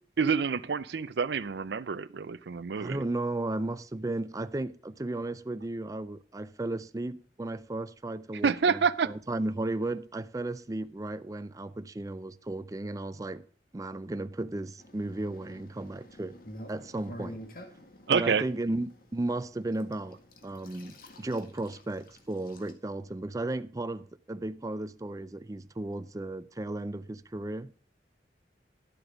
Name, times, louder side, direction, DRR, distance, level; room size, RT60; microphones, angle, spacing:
voice 1, 0.2-3.0 8.4-9.1 18.1-18.4, right 6 dB, 70° right, 0.5 m, -27 dB
voice 2, 2.8-13.5 13.7-16.4 16.7-17.4 18.1-27.7, right 2 dB, 20° right, 0.4 m, -34 dB
sound 1, 14.8-22.7, equal, 55° left, 1.9 m, -49 dB
12.0 x 7.9 x 5.0 m
head